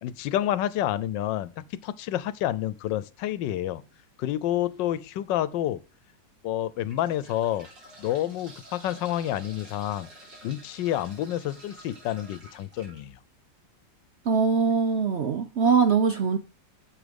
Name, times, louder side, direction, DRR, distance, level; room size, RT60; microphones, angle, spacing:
voice 1, 0.0-3.8 4.2-5.8 6.4-7.7 8.0-10.1 10.4-13.2, left 12 dB, 90° left, 1.3 m, -29 dB
sound 1, 4.7-4.9 5.6-5.7 6.6-13.0 14.6-14.7 15.0-15.1, right 1 dB, 80° right, 4.3 m, -50 dB
voice 2, 14.2-16.4, right 5 dB, 60° right, 0.7 m, -22 dB
9.7 x 6.9 x 5.2 m
omnidirectional pair, 1.9 m